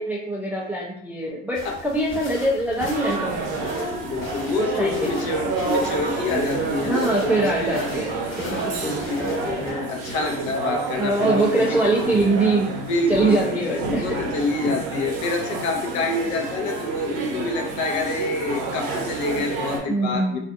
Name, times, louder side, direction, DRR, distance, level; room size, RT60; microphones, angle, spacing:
voice 1, 0.0-3.9 4.6-5.1 6.8-9.3 9.6-9.7 11.0-12.8 13.1-14.1 19.9-20.4, right 2 dB, 5° right, -4 dB, 0.3 m, -23 dB
sound 1, 1.5-9.7, left 2 dB, 35° left, 1.2 m, -41 dB
sound 2, 2.8-19.8, right 3 dB, 60° right, 0.9 m, -29 dB
voice 2, 4.0-7.9 8.4-11.8 12.9-20.4, left 3 dB, 55° left, 3 dB, 0.7 m, -27 dB
2.4 x 2.4 x 2.5 m, 0.69 s
supercardioid pair, 95°, 35 cm